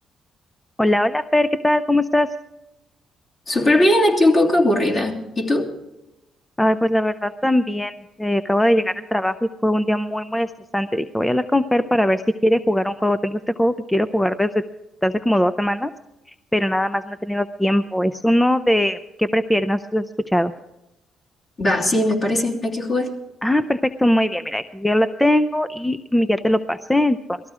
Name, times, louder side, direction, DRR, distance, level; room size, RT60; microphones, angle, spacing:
voice 1, 0.8-2.3 6.6-10.5 10.7-14.5 15.0-15.9 16.5-20.5 23.4-27.4, left 1 dB, 5° left, 12 dB, 0.5 m, -20 dB
voice 2, 3.5-5.7 21.6-23.1, left 1 dB, 40° left, -1 dB, 3.0 m, -19 dB
19.0 x 13.5 x 4.9 m, 0.96 s
cardioid pair, 90°, 0 cm